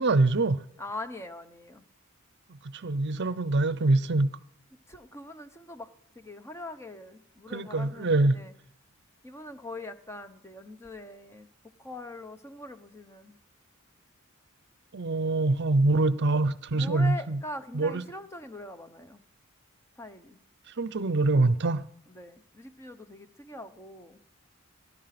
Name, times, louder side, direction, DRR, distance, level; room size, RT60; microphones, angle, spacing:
voice 1, 0.0-0.6 2.8-4.3 7.5-8.4 14.9-17.4 17.7-18.0 20.8-21.8, right 2 dB, 50° right, 0.7 m, -24 dB
voice 2, 0.8-1.8 4.9-5.9 6.2-8.5 9.2-11.5 11.8-13.4 16.7-19.2 20.0-20.4 22.1-24.2, left 2 dB, 10° left, 0.9 m, -42 dB
18.0 x 11.0 x 5.9 m
head